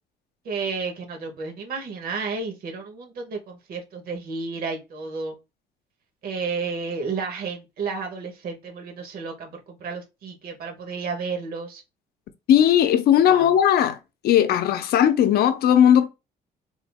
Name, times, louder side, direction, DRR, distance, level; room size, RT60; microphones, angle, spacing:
voice 1, 0.4-5.3 6.2-11.8 13.3-13.5, right 4 dB, 65° right, 1.2 m, -32 dB
voice 2, 12.5-14.0 14.2-16.1, left 10 dB, 65° left, 0.6 m, -17 dB
3.7 x 2.0 x 3.4 m
cardioid pair, 110°, 17 cm